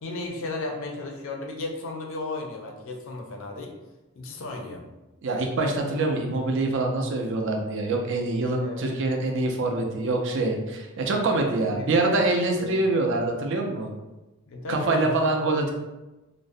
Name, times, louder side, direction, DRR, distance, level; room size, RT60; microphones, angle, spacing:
voice 1, 0.0-3.7 4.2-4.9 8.6-8.9 11.5-12.0 12.6-12.9 14.5-15.2 15.5-15.6, left 2 dB, 60° left, 1 dB, 0.4 m, -35 dB
voice 2, 5.2-13.9 14.7-15.7, right 2 dB, 55° right, 2 dB, 0.4 m, -25 dB
2.4 x 2.0 x 2.5 m, 1.0 s
head